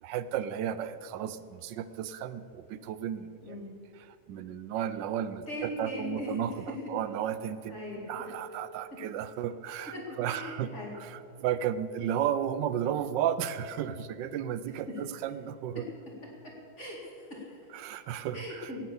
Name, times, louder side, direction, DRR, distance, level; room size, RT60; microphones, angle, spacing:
voice 1, 0.0-3.6 4.0-7.8 8.1-10.7 11.0-15.8 17.7-18.7, right 9 dB, 80° right, 14 dB, 1.3 m, -33 dB
voice 2, 5.5-6.3 6.7-6.8 7.7-8.1 9.9-10.9 12.0-12.1 16.8-17.6 18.3-18.8, left 1 dB, 40° left, -3 dB, 2.6 m, -39 dB
Keyboard (musical), 7.9-11.1, left 1 dB, 10° left, 0.9 m, -54 dB
17.5 x 7.5 x 7.0 m, 2.5 s
omnidirectional pair, 1.9 m